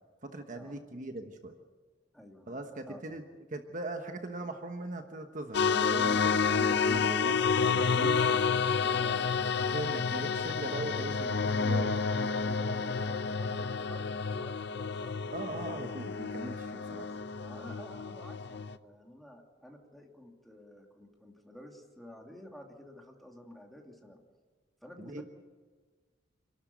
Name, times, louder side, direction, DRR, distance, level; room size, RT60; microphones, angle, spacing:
voice 1, 0.2-1.6 2.5-3.2 3.5-8.2 9.7-12.0 15.3-17.0 25.0-25.2, right 2 dB, 45° right, 6 dB, 1.2 m, -40 dB
voice 2, 2.1-2.6 2.9-3.0 8.0-9.3 12.1-15.1 16.7-17.0 17.4-24.2 24.8-25.2, left 1 dB, ahead, 0 dB, 2.7 m, -51 dB
sound 1, 5.5-18.8, left 5 dB, 65° left, 0.7 m, -30 dB
27.5 x 12.5 x 9.5 m, 1.5 s
head